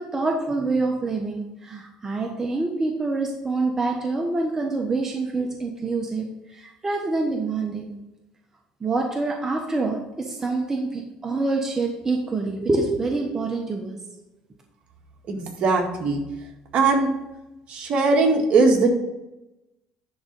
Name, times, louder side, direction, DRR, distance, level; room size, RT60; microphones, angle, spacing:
voice 1, 0.0-6.2 6.5-7.9 8.8-14.0, right 3 dB, 20° right, 1 dB, 1.2 m, -26 dB
voice 2, 15.3-16.2 16.7-17.1 17.7-18.9, right 3 dB, 50° right, 2 dB, 1.9 m, -20 dB
10.5 x 3.9 x 5.5 m, 0.95 s
supercardioid pair, 100°, 2 cm